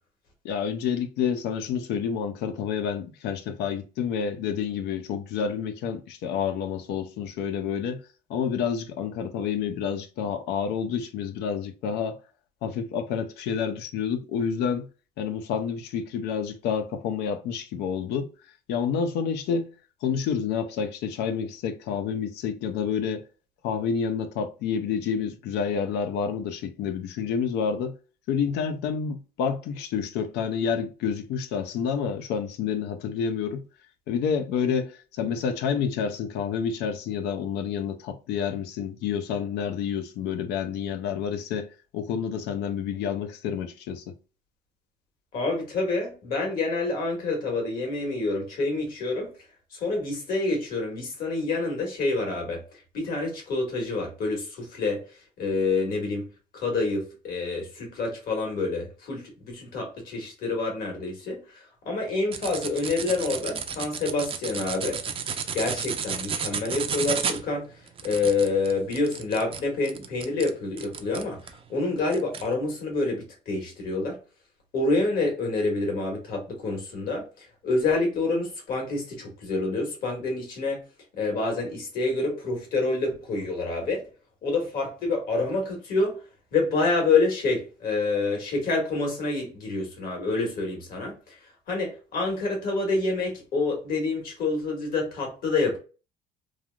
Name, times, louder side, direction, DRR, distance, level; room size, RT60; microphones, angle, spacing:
voice 1, 0.4-8.0 8.3-12.2 12.6-14.9 15.2-18.3 18.7-19.7 20.0-23.2 23.6-27.9 28.3-33.6 34.1-41.7 41.9-44.1, left 7 dB, 85° left, 0.5 m, -29 dB
voice 2, 45.3-49.3 49.7-52.6 52.9-55.0 55.4-56.3 56.5-61.4 61.8-65.0 65.5-67.7 68.0-71.4 71.7-74.2 74.7-77.2 77.6-80.8 81.2-84.0 84.4-86.2 86.5-91.1 91.7-95.8, left 3 dB, 60° left, 1.6 m, -27 dB
sound 1, 62.3-71.6 72.1-72.5, right 6 dB, 35° right, 0.4 m, -32 dB
3.2 x 2.4 x 2.2 m
cardioid pair, 110°, 17 cm